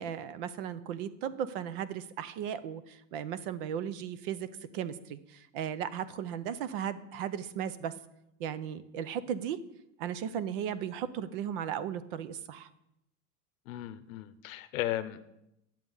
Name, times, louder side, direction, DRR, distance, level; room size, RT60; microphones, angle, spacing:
voice 1, 0.0-4.5 4.7-7.9 8.4-9.6 10.0-12.7, right 9 dB, 45° right, 15 dB, 0.6 m, -36 dB
voice 2, 13.7-15.3, left 13 dB, 80° left, 11 dB, 0.8 m, -36 dB
11.0 x 7.5 x 5.5 m, 0.85 s
supercardioid pair, 175°, 40 cm